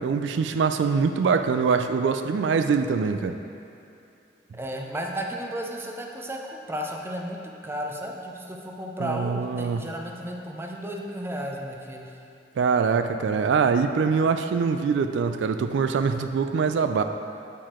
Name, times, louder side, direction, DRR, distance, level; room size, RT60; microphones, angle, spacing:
voice 1, 0.0-3.3 9.0-9.8 12.6-17.0, right 5 dB, 85° right, 8 dB, 0.3 m, -23 dB
voice 2, 4.5-12.2, equal, 15° right, 0 dB, 0.5 m, -34 dB
7.5 x 4.8 x 4.3 m, 2.6 s
head